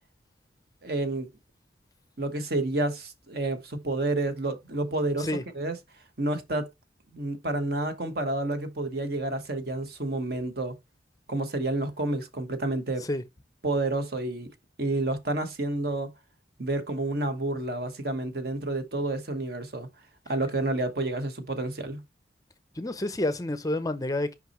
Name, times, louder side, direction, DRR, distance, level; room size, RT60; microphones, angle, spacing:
voice 1, 0.8-1.3 2.2-5.3 5.5-5.8 6.2-6.7 7.1-10.8 11.3-13.1 13.6-14.5 14.8-16.1 16.6-19.9 20.3-22.0, right 2 dB, 55° right, 1.2 m, -29 dB
voice 2, 22.7-24.4, left 1 dB, 20° left, 0.5 m, -29 dB
5.8 x 5.4 x 3.0 m
head